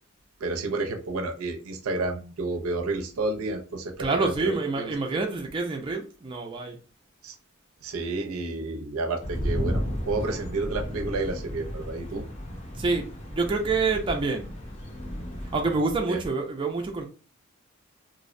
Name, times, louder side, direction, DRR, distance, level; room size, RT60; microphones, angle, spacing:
voice 1, 0.4-4.9 7.2-7.3 7.8-12.2 16.1-16.2, right 2 dB, 90° right, 4 dB, 0.5 m, -30 dB
voice 2, 4.0-6.8 12.8-14.5 15.5-17.1, right 3 dB, 25° right, 3 dB, 0.3 m, -27 dB
sound 1, 9.2-15.8, equal, 35° left, 0.5 m, -34 dB
2.5 x 2.0 x 2.5 m, 0.36 s
head